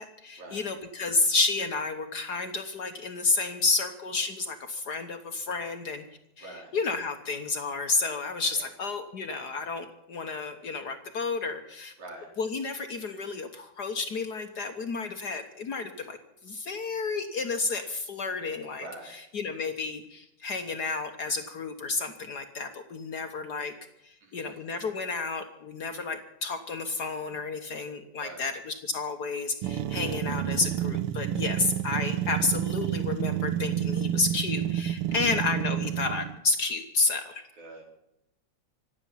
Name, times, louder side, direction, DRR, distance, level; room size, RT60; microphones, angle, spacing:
voice 1, 0.0-6.0 6.4-11.9 12.4-16.2 16.4-23.7 24.0-37.4, left 3 dB, 60° left, 6 dB, 1.0 m, -31 dB
voice 2, 6.4-6.7 8.5-8.7 12.0-12.3 18.8-19.1 24.2-24.6 28.2-28.5 35.1-35.2 37.6-37.8, right 2 dB, 75° right, 0 dB, 5.6 m, -44 dB
sound 1, 29.6-36.4, right 11 dB, 90° right, 1.2 m, -30 dB
25.5 x 8.8 x 5.7 m, 0.81 s
omnidirectional pair, 3.4 m